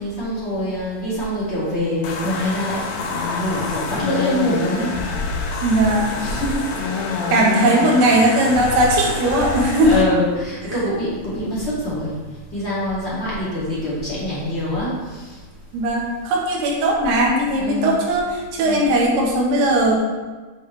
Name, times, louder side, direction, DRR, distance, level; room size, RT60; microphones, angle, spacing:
voice 1, 0.0-4.9 6.2-6.7 7.5-7.7 9.8-12.2 12.5-15.3 17.6-18.0 18.6-18.8, left 1 dB, 20° left, -9 dB, 1.8 m, -24 dB
sound 1, 2.0-10.0, left 4 dB, 85° left, 2.9 m, -26 dB
voice 2, 5.6-6.1 7.3-10.0 15.7-20.0, right 1 dB, 85° right, -2 dB, 3.3 m, -18 dB
10.0 x 5.3 x 3.3 m, 1.3 s
omnidirectional pair, 4.5 m